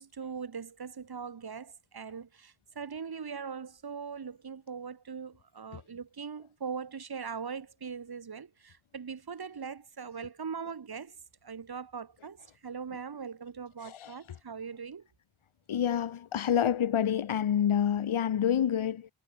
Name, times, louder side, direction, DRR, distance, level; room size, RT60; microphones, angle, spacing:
voice 1, 0.0-11.1 11.4-15.1, right 6 dB, 50° right, 2.5 m, -41 dB
voice 2, 15.7-19.1, left 9 dB, 75° left, 1.5 m, -28 dB
wide cardioid pair, 140°, 49 cm